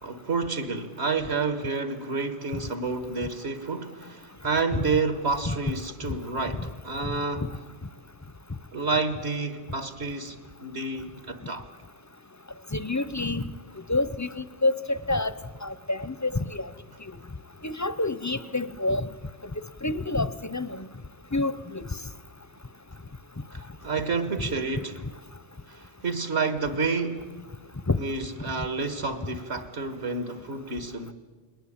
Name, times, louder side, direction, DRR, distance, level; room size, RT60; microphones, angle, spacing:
voice 1, 0.0-7.4 8.7-10.4 10.6-11.7 23.5-25.0 25.7-27.3 28.0-31.1, right 4 dB, 65° right, 1.9 m, -29 dB
voice 2, 12.7-13.5 13.9-15.3 15.6-16.7 17.6-19.1 19.8-20.9 21.3-21.8 27.9-28.0, left 2 dB, 20° left, 0.6 m, -27 dB
29.0 x 20.5 x 8.8 m
omnidirectional pair, 1.2 m